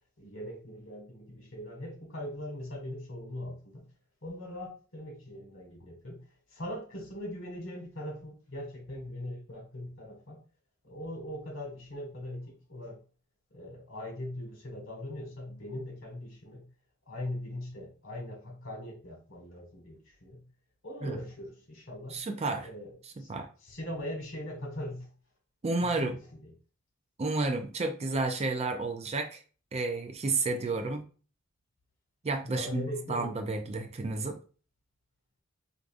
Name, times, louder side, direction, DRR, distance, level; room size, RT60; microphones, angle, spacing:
voice 1, 0.2-3.8 4.2-6.2 6.5-10.4 10.8-13.0 13.5-16.6 17.1-20.4 20.8-22.2 22.6-23.3 23.6-25.1 25.8-26.5 30.7-30.9 32.4-33.4, left 1 dB, 70° left, 0 dB, 1.6 m, -41 dB
voice 2, 22.1-22.7 23.3-23.5 25.6-26.2 27.2-29.4 29.7-31.0 32.2-34.4, right 3 dB, 30° right, 6 dB, 0.4 m, -31 dB
4.6 x 2.6 x 2.5 m, 0.37 s
head